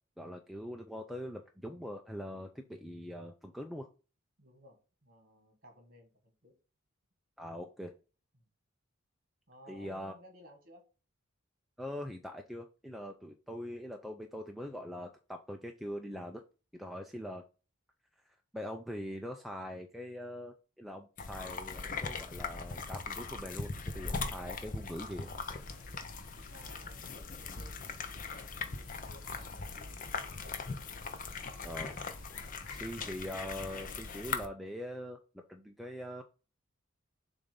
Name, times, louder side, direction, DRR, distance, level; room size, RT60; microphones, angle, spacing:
voice 1, 0.2-3.9 7.4-7.9 9.7-10.1 11.8-16.4 16.7-17.4 18.5-25.3 31.6-32.0 32.7-35.2 35.5-36.2, equal, ahead, 3 dB, 0.4 m, -42 dB
voice 2, 4.4-6.5 8.3-8.5 9.5-10.8 26.5-28.3 28.7-30.6, equal, 40° right, 4 dB, 1.9 m, -58 dB
sound 1, 21.2-34.5, left 4 dB, 40° left, 0.6 m, -40 dB
sound 2, 25.4-34.2, left 3 dB, 75° left, 1.0 m, -54 dB
7.0 x 2.6 x 5.1 m, 0.34 s
head